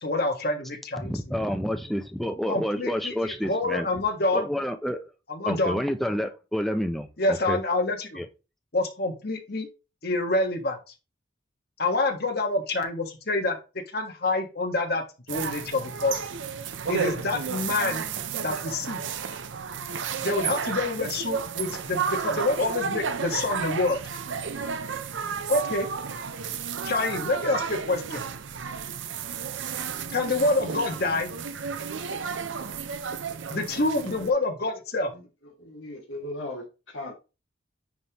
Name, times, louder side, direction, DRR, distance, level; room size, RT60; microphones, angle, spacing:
voice 1, 0.0-1.1 2.5-4.5 5.3-5.8 7.2-8.2 8.7-9.7 10.0-10.8 11.8-13.6 13.9-16.2 16.9-18.1 18.4-19.0 20.2-24.0 25.5-25.9 26.8-28.2 30.1-31.3 33.5-35.1, left 2 dB, 50° left, 1.4 m, -27 dB
voice 2, 1.0-3.9 4.3-5.0 5.5-7.6 8.1-8.3, equal, ahead, 0.6 m, -29 dB
sound 1, 15.3-34.3, right 6 dB, 70° right, 0.6 m, -32 dB
voice 3, 35.6-37.1, left 1 dB, 80° left, 2.1 m, -37 dB
9.3 x 3.6 x 3.0 m
head